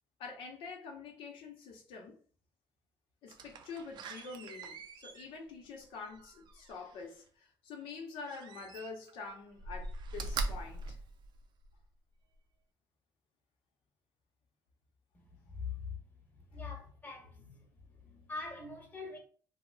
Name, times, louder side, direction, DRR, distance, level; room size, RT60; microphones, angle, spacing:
voice 1, 0.2-2.2 3.2-11.0 18.0-18.3, left 4 dB, 85° left, 0.8 m, -46 dB
Slam, 3.3-7.1 8.2-9.2 9.5-11.8 12.3-12.4, right 3 dB, 60° right, 0.4 m, -42 dB
voice 2, 15.5-16.0 16.5-17.6 18.3-19.2, left 4 dB, 20° left, 1.0 m, -42 dB
2.9 x 2.0 x 3.8 m
cardioid pair, 110°, 9 cm